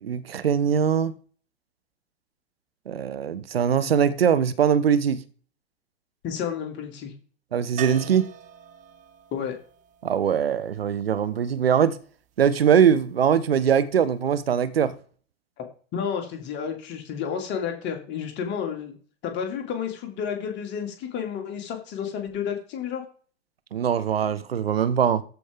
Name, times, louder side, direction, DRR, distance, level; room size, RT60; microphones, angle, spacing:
voice 1, 0.0-1.1 2.9-5.2 7.5-8.3 10.0-12.0 12.4-14.9 23.7-25.2, right 8 dB, 70° right, 0.9 m, -22 dB
voice 2, 6.2-7.1 9.3-9.5 15.6-15.7 15.9-18.9 19.2-23.0, left 7 dB, 35° left, 2.7 m, -31 dB
sound 1, 7.8-11.7 14.3-14.4 14.7-14.8, right 9 dB, 25° right, 0.8 m, -42 dB
14.0 x 5.1 x 3.7 m
figure-of-eight pair, 85°, 31 cm